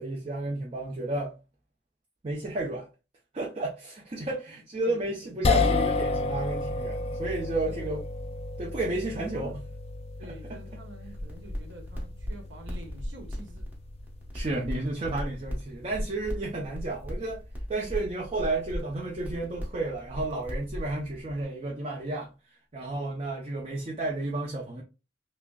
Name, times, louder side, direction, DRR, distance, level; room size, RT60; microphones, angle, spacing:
voice 1, 0.0-1.3 2.2-2.9 3.3-8.0 8.6-9.6 14.3-17.4 17.7-24.8, right 2 dB, 35° right, 0.6 m, -32 dB
voice 2, 4.5-5.4 7.7-7.9 9.1-9.6 10.2-13.7, right 1 dB, 70° right, 1.0 m, -48 dB
sound 1, 5.4-17.8, left 3 dB, 30° left, 0.3 m, -33 dB
sound 2, 11.0-21.4, equal, 10° right, 1.0 m, -38 dB
5.9 x 2.1 x 2.2 m
head